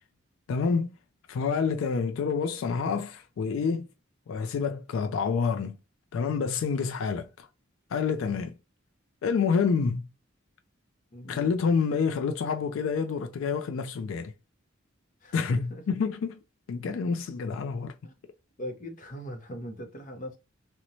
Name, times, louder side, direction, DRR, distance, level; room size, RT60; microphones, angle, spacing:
voice 1, 0.5-0.9 1.3-3.9 4.3-5.8 6.1-7.5 7.9-8.6 9.2-10.1 11.3-14.3 15.3-15.6 15.9-16.4 16.7-18.0, left 5 dB, 75° left, 0.3 m, -28 dB
voice 2, 11.1-11.5 15.2-15.8 18.0-18.2 18.6-20.4, equal, 40° left, 0.6 m, -40 dB
2.9 x 2.1 x 2.5 m
head